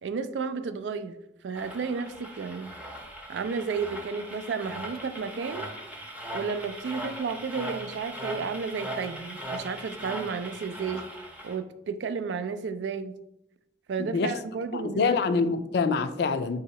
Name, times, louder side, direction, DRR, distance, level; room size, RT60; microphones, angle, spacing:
voice 1, 0.0-1.2 1.4-2.7 3.3-5.7 6.3-11.0 11.4-13.1 13.9-15.2, right 5 dB, 80° right, 0.3 m, -32 dB
sound 1, 1.5-11.6, right 1 dB, 10° right, 0.6 m, -39 dB
voice 2, 14.0-14.3 14.7-16.6, left 4 dB, 60° left, 0.3 m, -26 dB
3.7 x 2.8 x 4.2 m
head